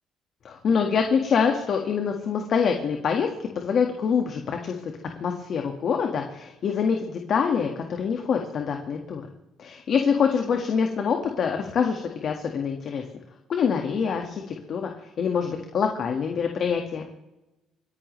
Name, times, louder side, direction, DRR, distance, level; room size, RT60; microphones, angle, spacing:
voice 1, 0.4-3.3 3.5-4.9 5.2-9.2 9.6-13.0 13.5-14.9 15.2-17.1, left 6 dB, 55° left, 3 dB, 1.7 m, -25 dB
29.0 x 10.5 x 3.3 m, 0.98 s
cardioid pair, 85°, 0 cm